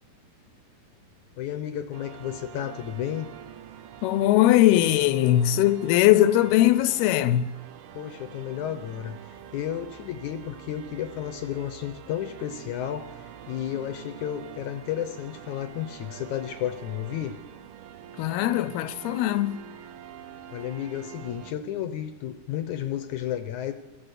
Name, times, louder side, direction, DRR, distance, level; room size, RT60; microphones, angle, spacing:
voice 1, 1.4-3.3 7.9-9.2 9.5-17.4 20.5-23.7, left 11 dB, 70° left, 1.9 m, -32 dB
Budapest Cathedral Organ with Tourist Noise, 1.9-21.5, right 10 dB, 85° right, 3.0 m, -45 dB
voice 2, 4.0-7.5 18.2-19.6, left 13 dB, 85° left, 2.8 m, -20 dB
21.5 x 14.5 x 8.2 m
omnidirectional pair, 4.4 m